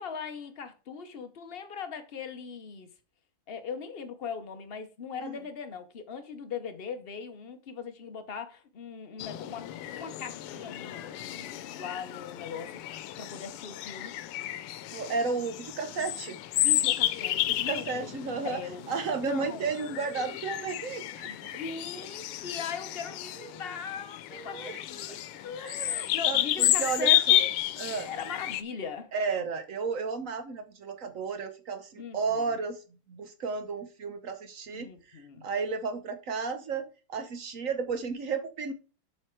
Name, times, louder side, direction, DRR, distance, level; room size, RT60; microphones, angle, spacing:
voice 1, 0.0-2.9 3.5-12.8 13.2-14.1 16.6-18.1 18.4-18.8 19.2-19.7 21.3-27.5 28.0-29.1 32.0-32.6 34.7-35.5, left 6 dB, 65° left, 0.5 m, -40 dB
sound 1, 9.2-28.6, left 13 dB, 85° left, 1.6 m, -31 dB
voice 2, 14.9-16.4 17.5-18.6 18.9-21.3 23.4-23.6 24.3-24.8 25.1-25.2 25.6-27.4 27.8-28.1 29.1-32.8 33.1-38.7, right 4 dB, 70° right, 0.8 m, -33 dB
7.5 x 4.7 x 4.5 m
omnidirectional pair, 2.4 m